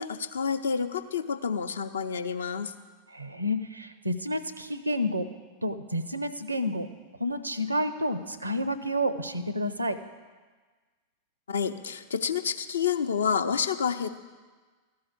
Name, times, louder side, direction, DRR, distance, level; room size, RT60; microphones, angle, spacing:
voice 1, 0.0-2.7 11.5-14.2, left 6 dB, 70° left, 8 dB, 0.6 m, -29 dB
voice 2, 3.1-5.2 5.6-6.9 7.2-10.0, equal, 80° right, 12 dB, 0.6 m, -30 dB
14.0 x 4.8 x 8.2 m, 1.4 s
figure-of-eight pair, 90°, 0 cm